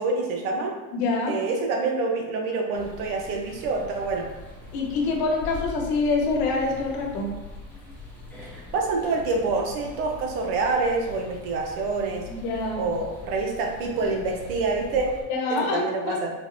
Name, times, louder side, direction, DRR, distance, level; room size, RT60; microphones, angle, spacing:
voice 1, 0.0-0.7 1.3-4.3 8.5-12.2 12.7-15.1 15.5-16.3, right 3 dB, 85° right, 1 dB, 0.9 m, -27 dB
voice 2, 0.9-1.4 4.7-7.3 12.3-12.8 15.3-16.2, left 3 dB, 60° left, 0 dB, 0.9 m, -26 dB
sound 1, 2.7-15.2, left 2 dB, 5° left, 0.8 m, -42 dB
3.9 x 2.8 x 2.6 m, 1.1 s
supercardioid pair, 130°, 42 cm